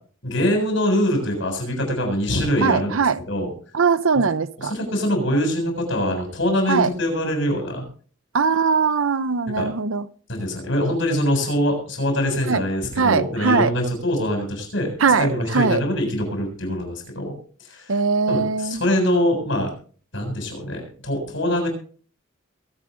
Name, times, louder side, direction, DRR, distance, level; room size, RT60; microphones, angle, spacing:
voice 1, 0.2-2.9 3.3-3.5 4.1-4.2 4.7-7.8 9.6-9.7 10.3-17.3 17.6-17.9 18.3-19.7 20.1-21.7, equal, 70° left, 7.1 m, -23 dB
voice 2, 2.6-3.2 3.7-4.7 6.7-6.9 8.3-10.1 12.5-12.6 13.0-13.7 15.0-15.8 17.9-18.9, right 5 dB, 85° right, 0.7 m, -20 dB
23.0 x 8.6 x 4.0 m
head